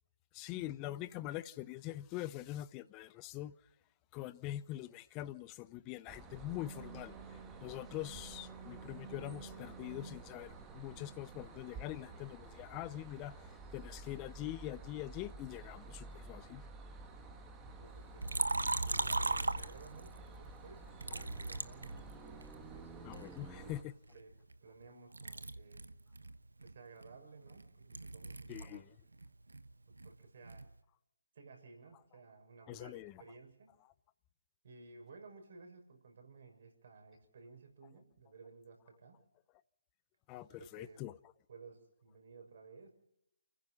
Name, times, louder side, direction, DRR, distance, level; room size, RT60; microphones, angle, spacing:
voice 1, 0.3-3.5 4.1-7.1 7.6-13.4 13.7-16.6 23.0-23.9 28.5-28.8 32.7-33.2 40.3-41.2, left 15 dB, 20° left, 0.8 m, -44 dB
sound 1, 6.1-23.8, right 3 dB, 15° right, 1.6 m, -51 dB
voice 2, 17.6-18.5 18.8-22.9 23.6-23.7 24.1-24.3 24.6-25.9 26.6-28.8 30.0-30.7 31.3-33.7 34.6-39.2 40.5-41.0 41.5-42.9, right 4 dB, 45° right, 6.5 m, -56 dB
Liquid, 18.2-20.2 21.0-22.5 23.1-24.9 25.1-28.8 29.1-30.7, right 2 dB, 75° right, 1.1 m, -38 dB
29.5 x 15.5 x 5.8 m
figure-of-eight pair, 145°, 0 cm